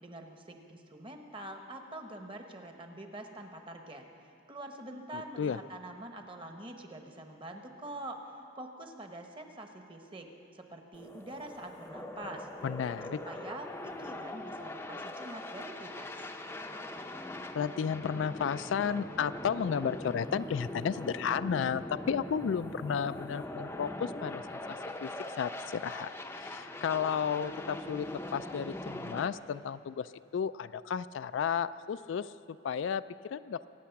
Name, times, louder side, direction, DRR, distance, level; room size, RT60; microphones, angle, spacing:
voice 1, 0.0-4.0 4.5-8.2 8.6-12.5 13.2-16.3, right 1 dB, 25° right, 4 dB, 1.1 m, -45 dB
sound 1, 10.9-29.3, left 1 dB, 10° left, 0.6 m, -42 dB
voice 2, 12.6-13.2 17.5-25.1 25.4-33.7, left 7 dB, 70° left, 14 dB, 0.3 m, -33 dB
24.0 x 9.2 x 5.8 m, 2.6 s
head